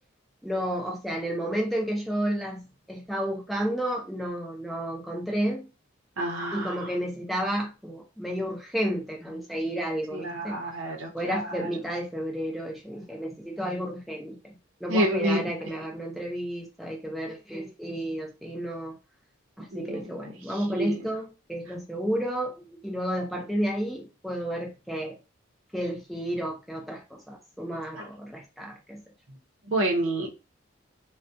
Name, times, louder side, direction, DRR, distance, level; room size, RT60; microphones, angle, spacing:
voice 1, 0.4-5.7 6.5-10.6 11.1-14.5 14.8-18.9 19.6-25.1 25.7-29.0, equal, ahead, -1 dB, 0.5 m, -31 dB
voice 2, 6.2-6.9 10.1-11.7 14.9-15.4 19.7-21.1 28.0-28.1 29.7-30.3, right 1 dB, 75° right, 1 dB, 0.7 m, -29 dB
2.3 x 2.2 x 2.6 m, 0.28 s
head